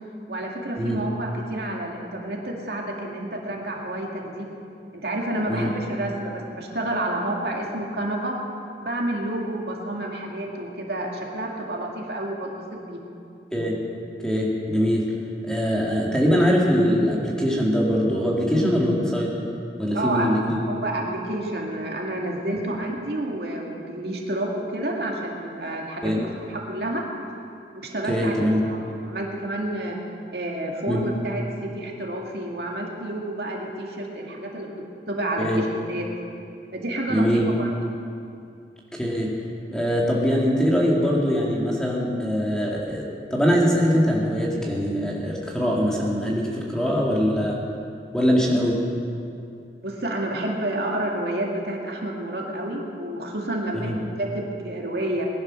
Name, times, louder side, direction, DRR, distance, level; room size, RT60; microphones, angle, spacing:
voice 1, 0.3-4.5 4.9-8.4 8.8-13.0 19.9-20.3 20.7-27.1 27.8-28.3 28.6-28.8 29.0-30.0 30.3-34.7 35.1-36.1 36.7-37.3 37.6-37.7 49.8-55.3, right 1 dB, 65° right, -1 dB, 2.1 m, -29 dB
voice 2, 14.2-15.0 15.4-19.3 19.8-20.6 26.0-26.2 28.1-28.6 30.9-31.0 35.4-35.6 37.1-37.5 38.9-39.3 39.7-47.6 48.1-48.8 53.8-53.9, equal, 5° left, -4 dB, 2.1 m, -22 dB
20.0 x 10.5 x 6.2 m, 2.5 s
head